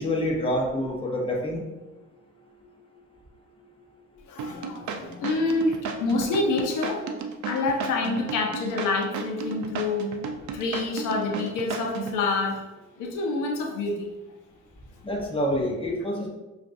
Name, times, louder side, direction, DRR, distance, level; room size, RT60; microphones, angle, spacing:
voice 1, 0.0-1.6 15.0-16.3, equal, 20° left, -1 dB, 0.9 m, -27 dB
voice 2, 4.3-7.1 7.5-10.0 10.5-12.6 13.0-14.1, left 3 dB, 85° left, 1 dB, 0.7 m, -27 dB
sound 1, 4.4-12.2, right 5 dB, 70° right, 0.5 m, -33 dB
5.7 x 2.5 x 2.6 m, 1.1 s
cardioid pair, 90°, 30 cm